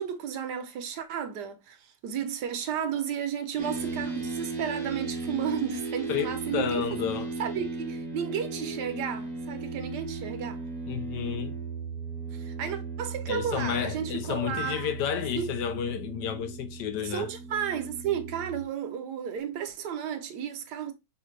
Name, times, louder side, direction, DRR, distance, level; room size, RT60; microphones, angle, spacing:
voice 1, 0.0-7.0 7.4-10.6 12.3-14.9 15.3-15.6 17.0-20.9, right 8 dB, 70° right, 1.2 m, -33 dB
sound 1, 3.6-18.6, right 4 dB, ahead, 0.9 m, -36 dB
voice 2, 6.1-7.3 10.9-11.5 13.3-17.3, left 9 dB, 75° left, 1.1 m, -31 dB
5.7 x 2.5 x 3.1 m
omnidirectional pair, 2.0 m